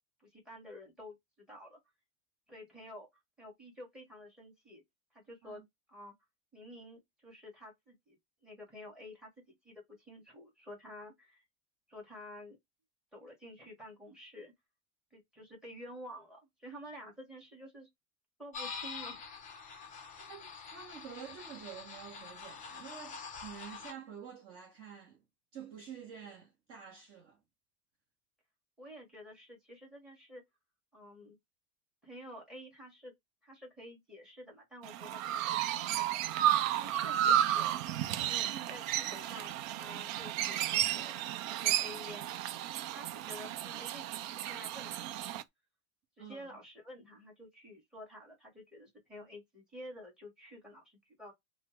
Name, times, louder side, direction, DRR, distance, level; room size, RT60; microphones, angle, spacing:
voice 1, 0.2-1.8 2.5-3.1 3.4-4.8 5.1-5.6 5.9-6.1 6.5-8.2 8.4-9.3 9.6-11.4 11.9-12.6 13.1-14.5 15.1-17.9 18.4-19.2 28.8-30.4 30.9-31.4 32.0-33.1 33.4-36.1 36.7-37.8 38.2-41.1 41.6-42.4 42.8-45.4 46.2-51.3, equal, ahead, 1.4 m, -50 dB
sound 1, 18.5-23.9, left 5 dB, 20° left, 0.5 m, -45 dB
voice 2, 20.2-25.2 25.5-27.4 43.2-43.3 46.2-46.5, right 8 dB, 30° right, 0.8 m, -49 dB
Chirp tweet, 34.8-45.4, right 11 dB, 65° right, 0.5 m, -33 dB
3.2 x 2.0 x 3.0 m
supercardioid pair, 135°, 44 cm